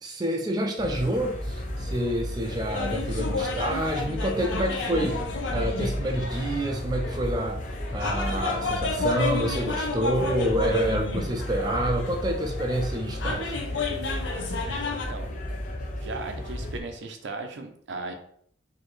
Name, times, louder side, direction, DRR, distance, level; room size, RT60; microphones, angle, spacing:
voice 1, 0.0-5.2 5.5-7.6 7.9-13.6, right 1 dB, 20° right, 2 dB, 0.4 m, -28 dB
sound 1, 0.8-16.8, left 1 dB, 40° left, 0.6 m, -33 dB
sound 2, 2.7-15.1, left 3 dB, 80° left, 0.7 m, -31 dB
voice 2, 14.9-15.4 16.0-18.1, right 3 dB, 75° right, 5 dB, 0.6 m, -37 dB
4.1 x 2.7 x 3.1 m, 0.64 s
head